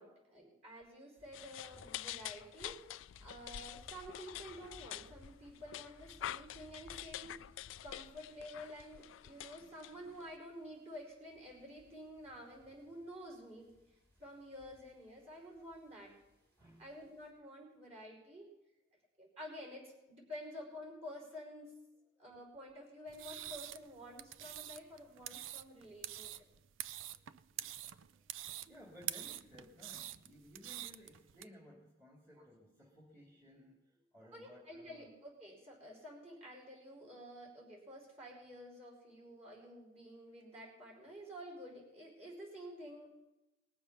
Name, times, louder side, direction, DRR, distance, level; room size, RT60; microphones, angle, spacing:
voice 1, 0.0-2.8 3.2-7.4 7.8-13.7 14.2-16.1 16.8-18.5 19.2-21.7 22.2-26.4 34.3-43.1, equal, 35° right, -1 dB, 4.9 m, -50 dB
sound 1, 1.2-17.3, left 1 dB, 55° right, 5.7 m, -65 dB
sound 2, 1.3-10.3, left 12 dB, 90° left, 0.3 m, -47 dB
voice 2, 16.5-16.9 26.3-26.4 27.1-27.2 27.6-35.1 39.2-39.3, equal, 15° right, -4 dB, 2.4 m, -59 dB
sound 3, 23.1-31.4, right 13 dB, 90° right, 0.5 m, -46 dB
20.0 x 7.1 x 5.9 m, 0.99 s
head